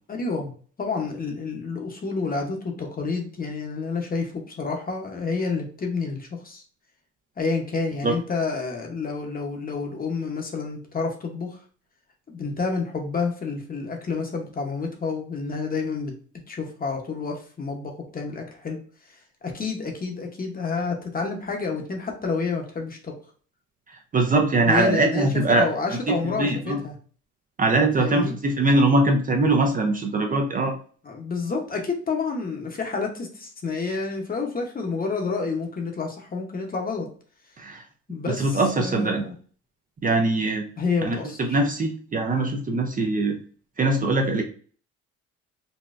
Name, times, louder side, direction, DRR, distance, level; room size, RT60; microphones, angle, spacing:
voice 1, 0.1-0.5 0.8-6.6 7.4-11.6 12.3-16.1 16.5-18.8 19.4-23.1 24.7-25.3 25.6-26.9 28.0-28.3 31.0-37.1 38.1-39.3 40.8-41.6, left 4 dB, 30° left, 2 dB, 0.8 m, -29 dB
voice 2, 24.1-25.7 26.1-26.8 27.6-30.8 37.6-37.8 38.3-39.3 40.0-40.6 41.0-43.4 43.8-44.4, right 2 dB, 30° right, 3 dB, 0.5 m, -22 dB
4.0 x 2.2 x 2.5 m, 0.43 s
cardioid pair, 90°, 30 cm